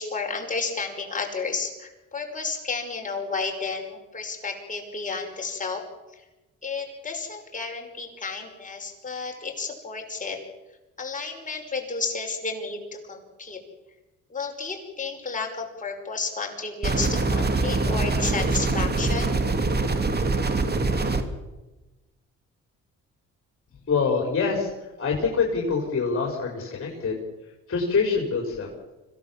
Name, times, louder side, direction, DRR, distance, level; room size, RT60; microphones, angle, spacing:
voice 1, 0.0-5.8 6.6-10.4 11.0-13.6 14.3-19.4, left 4 dB, 25° left, 2 dB, 5.6 m, -32 dB
sound 1, 16.8-21.2, right 3 dB, 35° right, 2.7 m, -24 dB
voice 2, 23.9-27.2 27.7-28.7, left 5 dB, 45° left, 0 dB, 5.2 m, -25 dB
26.0 x 17.0 x 7.4 m, 1.1 s
cardioid pair, 90°, 30 cm